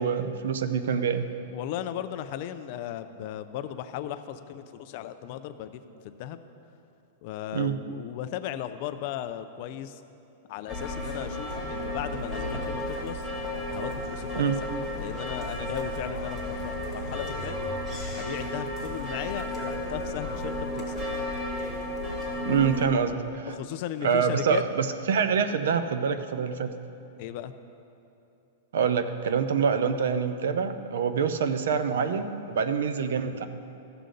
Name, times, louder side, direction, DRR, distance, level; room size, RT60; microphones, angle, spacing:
voice 1, 0.0-1.3 7.5-7.8 14.4-14.6 22.5-23.5 24.0-26.7 28.7-33.5, right 6 dB, 75° right, 10 dB, 0.6 m, -26 dB
voice 2, 1.5-6.4 7.2-10.0 10.5-13.3 13.7-14.7 15.0-17.6 18.1-21.0 23.5-24.6 27.2-27.5, left 11 dB, 40° left, 10 dB, 0.4 m, -36 dB
sound 1, 10.7-22.9, left 1 dB, 5° right, 1.7 m, -33 dB
14.5 x 6.8 x 3.9 m, 2.8 s
supercardioid pair, 170°, 0 cm